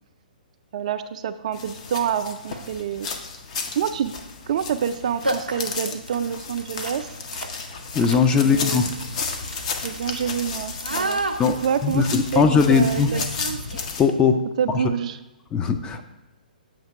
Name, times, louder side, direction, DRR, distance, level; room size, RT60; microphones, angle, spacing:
voice 1, 0.7-3.1 3.8-4.1 4.5-7.1 8.4-8.8 9.8-11.2 11.6-12.0 12.3-13.2 14.6-15.2, right 8 dB, 50° right, 11 dB, 0.3 m, -27 dB
sound 1, 1.5-14.0, left 4 dB, 45° left, 0.8 m, -33 dB
sound 2, 1.8-1.9 2.4-2.8 4.5-4.7 4.9-5.0 5.2-14.1, right 2 dB, 90° right, 0.6 m, -33 dB
voice 2, 7.9-8.9 11.4-11.6 11.8-13.1 14.0-14.4 14.7-14.8 15.5-16.0, left 5 dB, 15° left, 6 dB, 0.4 m, -19 dB
7.4 x 2.8 x 5.9 m, 1.0 s
figure-of-eight pair, 125°, 5 cm